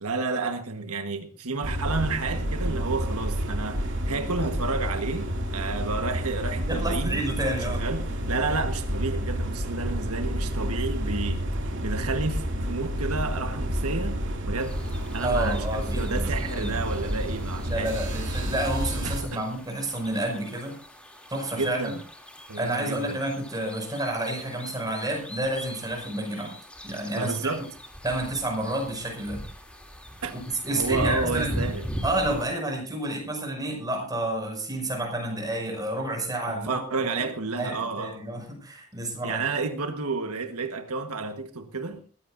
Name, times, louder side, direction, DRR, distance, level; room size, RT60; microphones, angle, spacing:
voice 1, 0.0-7.3 7.5-11.4 11.8-14.8 15.1-17.9 19.0-19.5 21.5-22.0 22.5-23.2 27.1-27.6 30.2-30.4 30.7-31.9 36.5-38.2 39.2-42.0, right 3 dB, 80° right, 1.4 m, -31 dB
sound 1, 1.6-19.2, equal, 55° right, 2.6 m, -29 dB
voice 2, 6.6-7.8 15.2-16.2 16.5-16.8 17.6-20.8 21.3-22.0 22.6-26.5 26.8-27.5 28.0-29.4 30.3-31.5 32.0-37.3 37.6-39.4, right 1 dB, 15° right, 5.9 m, -30 dB
sound 2, 14.6-32.5, equal, 5° left, 2.9 m, -39 dB
22.0 x 15.5 x 2.7 m
head